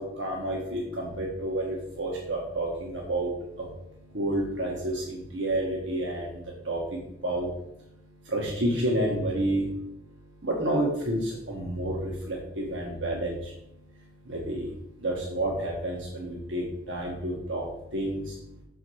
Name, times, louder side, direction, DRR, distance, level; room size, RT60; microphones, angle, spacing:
voice 1, 0.0-3.3 4.1-6.3 6.7-6.8 7.2-7.5 8.3-9.6 10.4-13.4 14.3-14.7 15.0-17.7 17.9-18.2, right 1 dB, 70° right, -2 dB, 1.5 m, -29 dB
6.5 x 5.1 x 6.3 m, 0.82 s
head